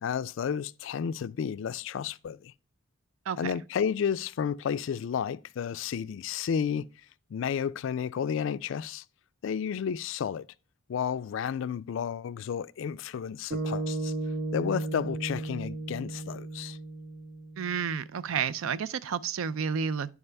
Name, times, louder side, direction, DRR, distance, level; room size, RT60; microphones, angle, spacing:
voice 1, 0.0-2.5 3.4-6.9 7.3-9.0 9.4-10.5 10.9-14.1 14.5-16.8, left 7 dB, 60° left, 0.3 m, -32 dB
sound 1, 13.5-17.9, right 2 dB, 55° right, 0.8 m, -34 dB
voice 2, 17.6-20.1, right 7 dB, 75° right, 0.4 m, -31 dB
11.0 x 4.7 x 3.3 m
head